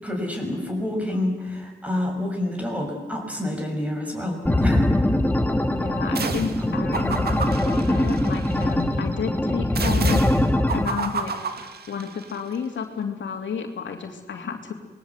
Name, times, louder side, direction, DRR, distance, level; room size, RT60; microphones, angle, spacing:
voice 1, 0.0-4.9 6.0-6.3, left 1 dB, 5° right, 2 dB, 5.9 m, -28 dB
sound 1, 4.4-10.8, left 1 dB, 10° left, 1.9 m, -22 dB
voice 2, 5.7-10.2 10.7-11.3 11.9-14.7, left 6 dB, 85° left, 4 dB, 2.9 m, -31 dB
sound 2, 6.2-6.6 6.9-8.7 9.8-12.4, right 5 dB, 55° right, 2.1 m, -31 dB
26.5 x 21.0 x 8.2 m, 1.2 s
wide cardioid pair, 130°, 19 cm